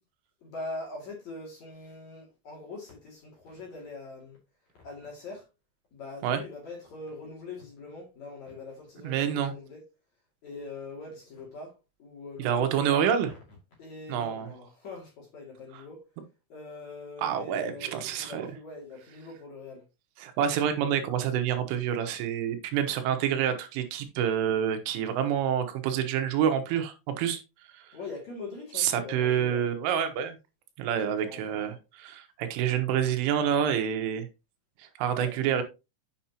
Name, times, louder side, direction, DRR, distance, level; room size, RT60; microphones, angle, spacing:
voice 1, 0.4-4.4 4.8-5.5 5.9-9.8 10.4-13.4 13.8-16.0 16.5-17.9 18.2-19.8 27.9-29.7 31.0-31.8 35.1-35.5, left 3 dB, 45° left, 3.1 m, -43 dB
voice 2, 9.0-9.5 12.4-13.3 14.1-14.5 17.2-18.5 20.2-27.4 27.7-27.9 28.8-30.4 30.8-34.3 34.8-35.6, right 9 dB, 85° right, 3.6 m, -27 dB
7.7 x 7.1 x 2.9 m
omnidirectional pair, 5.6 m